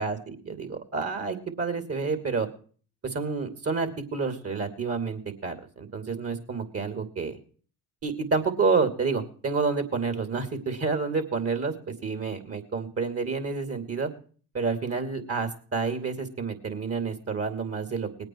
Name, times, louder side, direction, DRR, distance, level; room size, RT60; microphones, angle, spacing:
voice 1, 0.0-2.5 3.0-7.4 8.0-14.1 14.5-18.1, right 4 dB, 35° right, 8 dB, 2.8 m, -29 dB
20.0 x 8.9 x 4.6 m, 0.42 s
hypercardioid pair, 60°, 41 cm